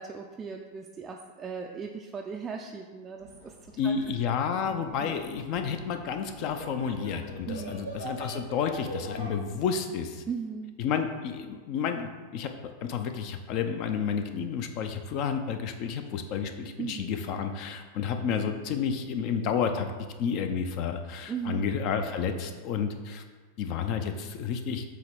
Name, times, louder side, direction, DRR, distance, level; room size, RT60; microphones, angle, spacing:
voice 1, 0.0-3.5 3.8-3.9 5.0-5.2 7.5-7.8 10.3-10.8 16.8-17.1 21.3-21.6, right 6 dB, 20° right, 1 dB, 0.4 m, -37 dB
sound 1, 3.2-9.4, right 1 dB, 75° left, 1.2 m, -43 dB
voice 2, 3.8-10.2 10.8-12.5 12.8-19.9 20.2-23.2 23.6-24.8, left 6 dB, 40° left, 7 dB, 0.6 m, -30 dB
7.8 x 2.9 x 5.0 m, 1.4 s
figure-of-eight pair, 90°, 0 cm